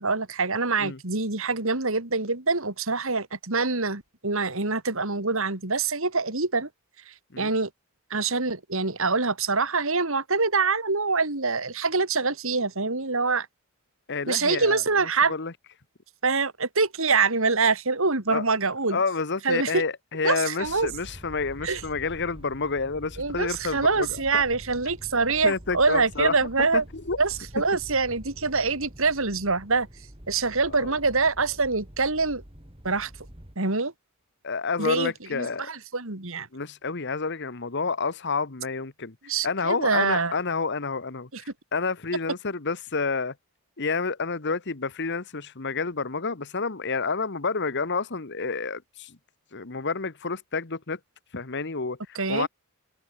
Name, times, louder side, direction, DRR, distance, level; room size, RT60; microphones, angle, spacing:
voice 1, 0.0-6.7 7.1-7.7 8.1-13.5 14.3-15.3 16.2-19.0 19.4-19.8 20.2-20.9 21.6-21.8 23.2-26.8 27.2-29.9 30.3-32.4 32.8-33.1 33.6-33.9 34.8-36.5 39.3-40.3 41.3-41.4 52.1-52.5, right 4 dB, 65° right, 3.1 m, -25 dB
voice 2, 14.1-14.8 15.3-15.5 18.3-18.4 18.9-24.1 24.3-24.4 25.4-27.2 30.7-30.9 34.4-35.7 36.5-43.3 43.8-49.1 49.5-51.0 51.3-52.5, left 4 dB, 55° left, 1.4 m, -29 dB
sound 1, 20.6-33.6, equal, 25° right, 3.4 m, -46 dB
open air
head